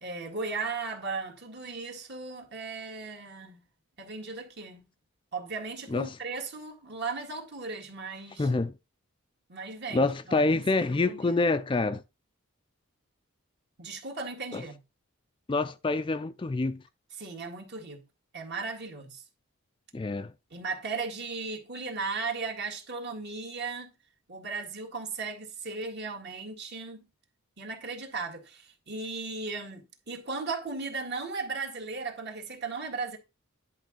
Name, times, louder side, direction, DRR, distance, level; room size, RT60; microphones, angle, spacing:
voice 1, 0.0-3.6 4.0-4.8 5.3-8.5 9.5-10.6 10.9-11.4 13.8-14.8 17.1-18.0 18.3-19.2 20.5-23.9 24.3-27.0 27.6-33.2, right 4 dB, 50° right, 1.8 m, -36 dB
voice 2, 8.4-8.7 9.9-12.0 14.5-14.6 15.5-16.8 19.9-20.3, left 3 dB, 25° left, 0.4 m, -27 dB
10.5 x 3.7 x 6.1 m
head